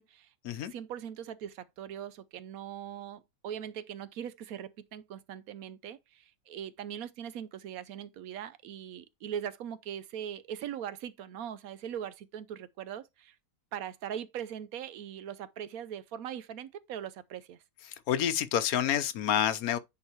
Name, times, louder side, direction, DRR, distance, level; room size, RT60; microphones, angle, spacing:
voice 1, 0.0-13.4 13.7-17.6, right 9 dB, 75° right, 1.0 m, -41 dB
voice 2, 18.1-19.8, left 10 dB, 70° left, 1.1 m, -28 dB
9.7 x 3.9 x 2.9 m
omnidirectional pair, 1.6 m